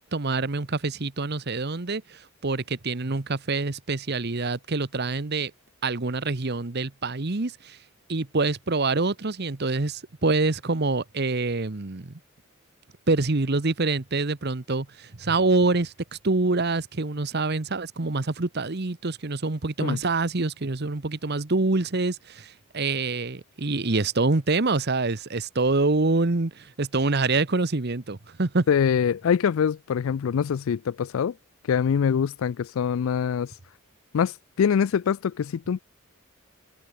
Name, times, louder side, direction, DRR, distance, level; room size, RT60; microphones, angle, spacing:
voice 1, 0.0-5.5 5.8-7.8 8.1-12.1 13.1-28.7, right 3 dB, 50° right, 1.1 m, -26 dB
voice 2, 28.7-31.3 31.7-33.5 34.1-34.3 34.6-35.8, left 7 dB, 75° left, 0.4 m, -24 dB
head